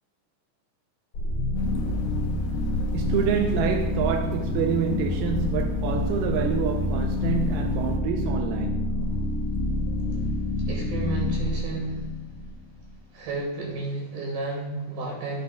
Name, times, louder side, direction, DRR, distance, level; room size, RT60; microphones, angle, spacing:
sound 1, 1.1-12.9, left 2 dB, 50° left, 2.1 m, -27 dB
sound 2, 1.5-8.0, left 3 dB, 70° left, 2.5 m, -34 dB
voice 1, 2.9-8.9, right 8 dB, 80° right, 2.4 m, -28 dB
voice 2, 10.7-12.1 13.1-15.4, right 2 dB, 65° right, 4.0 m, -32 dB
12.5 x 8.4 x 2.3 m
omnidirectional pair, 4.8 m